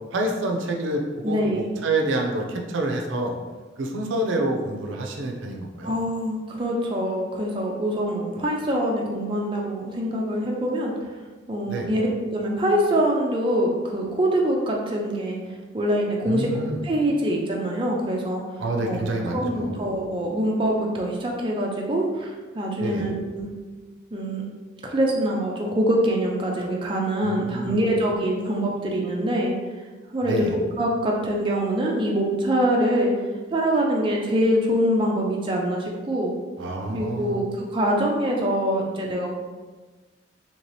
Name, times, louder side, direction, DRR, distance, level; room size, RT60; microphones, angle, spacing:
voice 1, 0.1-3.3 3.8-5.9 11.7-11.9 16.3-16.8 18.6-19.7 22.8-23.1 27.2-27.9 30.2-30.5 36.6-37.4, right 1 dB, 85° right, 2 dB, 0.5 m, -27 dB
voice 2, 1.2-1.7 5.8-10.9 11.5-15.4 15.7-16.5 16.8-18.4 18.8-19.0 19.3-23.5 24.1-24.4 24.8-29.5 30.1-30.5 30.8-33.1 33.5-36.3 36.9-39.3, right 1 dB, 25° right, -2 dB, 0.4 m, -24 dB
2.9 x 2.8 x 3.1 m, 1.3 s
head